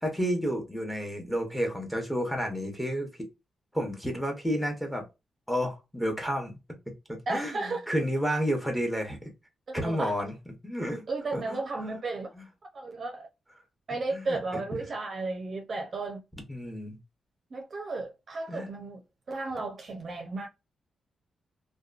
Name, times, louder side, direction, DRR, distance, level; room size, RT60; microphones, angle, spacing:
voice 1, 0.0-3.3 3.7-5.0 5.5-6.6 6.9-7.0 7.3-9.2 9.7-10.3 10.6-11.0 11.3-11.6 14.1-14.6 16.5-17.0 18.5-18.7, equal, ahead, 0.9 m, -30 dB
voice 2, 7.3-7.9 9.7-10.1 11.1-12.3 12.7-13.3 13.9-16.2 17.5-19.0 19.3-20.5, right 3 dB, 45° right, 0.6 m, -34 dB
2.8 x 2.2 x 2.4 m
cardioid pair, 100°, 0 cm